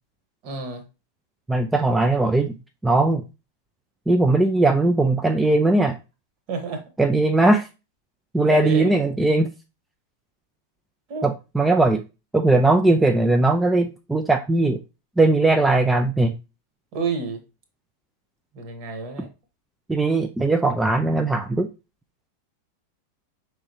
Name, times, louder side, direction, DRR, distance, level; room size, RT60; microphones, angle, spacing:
voice 1, 0.4-0.8 6.5-6.8 8.5-8.9 11.1-11.3 16.9-17.4 18.5-19.3, right 4 dB, 45° right, 6 dB, 1.2 m, -29 dB
voice 2, 1.5-2.6 2.8-3.2 4.1-6.0 7.0-7.7 8.3-9.5 11.2-12.0 12.3-14.8 15.2-16.4 19.9-21.7, right 2 dB, 5° right, 5 dB, 0.4 m, -19 dB
5.4 x 3.3 x 2.8 m, 0.29 s
figure-of-eight pair, 90°, 0 cm